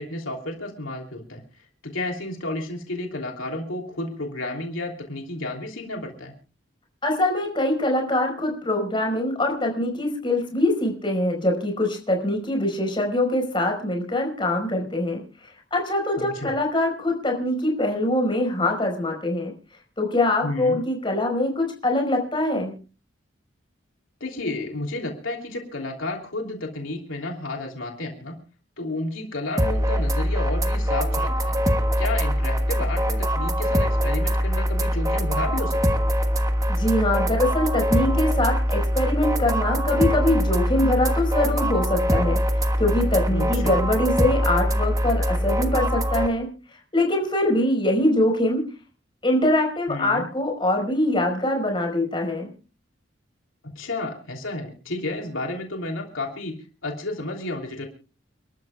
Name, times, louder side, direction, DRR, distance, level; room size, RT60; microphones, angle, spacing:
voice 1, 0.0-1.4 1.8-6.3 16.2-16.5 20.4-20.8 24.2-28.4 28.8-31.6 32.0-36.0 43.3-43.7 49.9-50.2 53.6-56.5 56.8-57.9, left 2 dB, 90° left, 2 dB, 3.1 m, -31 dB
voice 2, 7.0-15.2 15.7-19.5 20.0-22.7 36.7-46.5 46.9-48.6 49.2-52.5, left 1 dB, 25° left, 1 dB, 4.9 m, -23 dB
sound 1, 29.6-46.3, equal, 15° right, 1.2 m, -23 dB
29.5 x 13.0 x 2.4 m, 0.35 s
head